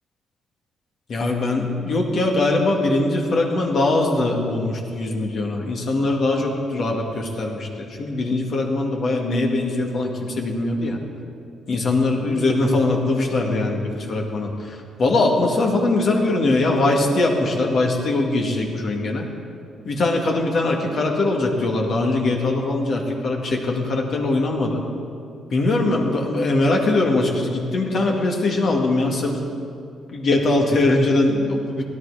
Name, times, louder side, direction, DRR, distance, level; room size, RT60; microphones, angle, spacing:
voice 1, 1.1-11.0 11.7-19.3 19.8-24.8 25.5-29.4 30.1-31.8, left 2 dB, 55° left, 1 dB, 2.1 m, -21 dB
17.0 x 11.5 x 4.9 m, 2.5 s
cardioid pair, 90°, 0 cm